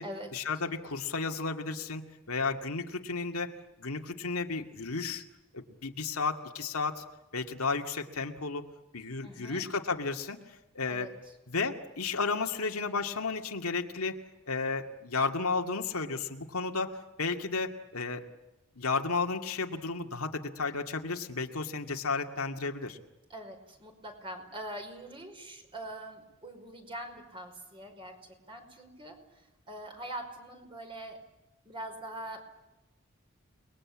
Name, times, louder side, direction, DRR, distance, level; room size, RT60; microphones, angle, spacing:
voice 1, 0.3-2.0 2.3-3.5 3.8-5.2 5.5-7.0 7.3-8.7 8.9-10.4 10.7-11.1 11.5-14.2 14.5-18.2 18.8-23.0, left 4 dB, 90° left, 4 dB, 2.2 m, -33 dB
voice 2, 9.2-9.6 10.9-11.1 23.3-29.4 29.7-31.2 31.6-32.4, right 1 dB, 25° right, 4 dB, 5.0 m, -43 dB
29.5 x 21.0 x 8.7 m, 0.98 s
head